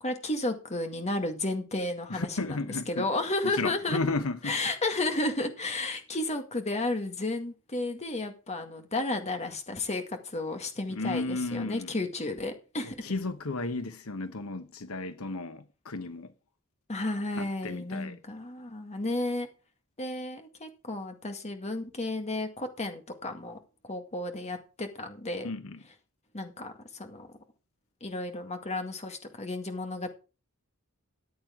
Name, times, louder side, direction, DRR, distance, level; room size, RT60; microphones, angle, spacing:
voice 1, 0.0-2.6 2.9-4.0 4.4-13.1 16.9-19.5 20.0-23.6 23.8-25.5 26.3-27.3 28.0-30.1, left 2 dB, 30° left, 1.9 m, -33 dB
voice 2, 2.1-3.0 3.4-4.6 10.9-11.9 13.0-16.3 17.3-18.1 25.4-25.8, left 3 dB, 80° left, 1.0 m, -33 dB
14.0 x 9.5 x 3.7 m
head